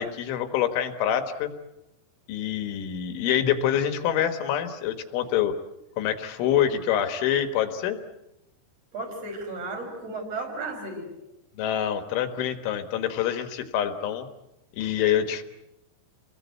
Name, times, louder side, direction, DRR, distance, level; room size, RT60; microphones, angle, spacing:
voice 1, 0.0-1.5 2.3-5.5 6.0-8.0 11.6-14.3 14.7-15.4, left 10 dB, 75° left, 8 dB, 3.7 m, -26 dB
voice 2, 8.9-11.1, right 2 dB, 30° right, 5 dB, 6.2 m, -34 dB
29.0 x 21.5 x 8.3 m, 0.92 s
omnidirectional pair, 5.9 m